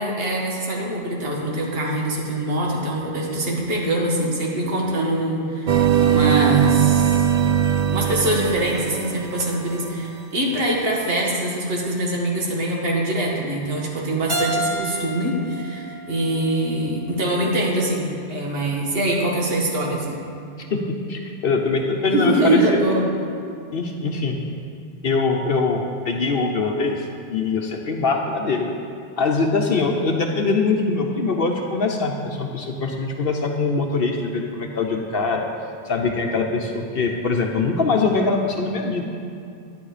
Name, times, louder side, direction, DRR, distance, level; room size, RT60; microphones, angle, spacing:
voice 1, 0.0-7.3 7.9-20.2 22.1-23.1, right 1 dB, 65° right, -2 dB, 1.8 m, -23 dB
sound 1, 5.7-9.9, right 9 dB, 50° right, 0.5 m, -20 dB
Keyboard (musical), 14.3-17.1, right 1 dB, 20° right, 1.3 m, -30 dB
voice 2, 20.7-22.6 23.7-24.4 25.0-26.9 27.3-28.8 29.2-35.4 35.8-39.0, left 4 dB, 65° left, 2 dB, 1.0 m, -22 dB
11.5 x 10.5 x 4.9 m, 2.6 s
omnidirectional pair, 1.1 m